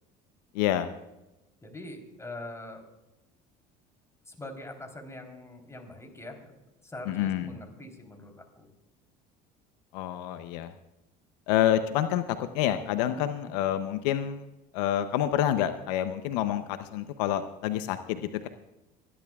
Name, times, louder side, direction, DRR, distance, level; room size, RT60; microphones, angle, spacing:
voice 1, 0.5-0.9 7.1-7.5 9.9-10.7 11.5-14.5 14.7-18.5, left 11 dB, 80° left, 10 dB, 0.7 m, -28 dB
voice 2, 1.6-2.8 4.3-6.5 6.8-8.7 13.1-13.5, left 1 dB, 15° left, 3 dB, 3.5 m, -43 dB
28.5 x 11.0 x 2.4 m, 0.96 s
supercardioid pair, 85°, 21 cm